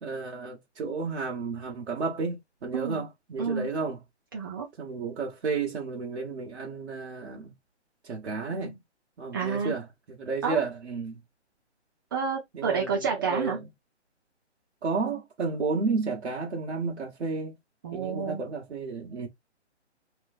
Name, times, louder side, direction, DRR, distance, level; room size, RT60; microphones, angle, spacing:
voice 1, 0.0-4.0 4.8-7.5 8.0-8.8 9.2-11.2 12.5-13.7 14.8-17.6 17.9-19.3, right 4 dB, 65° right, 1.3 m, -32 dB
voice 2, 2.7-3.0 3.4-3.7 4.3-4.7 9.3-9.7 10.4-10.6 12.1-13.6 17.8-18.4, right 5 dB, 20° right, 0.5 m, -29 dB
3.1 x 3.1 x 2.4 m
figure-of-eight pair, 140°, 35 cm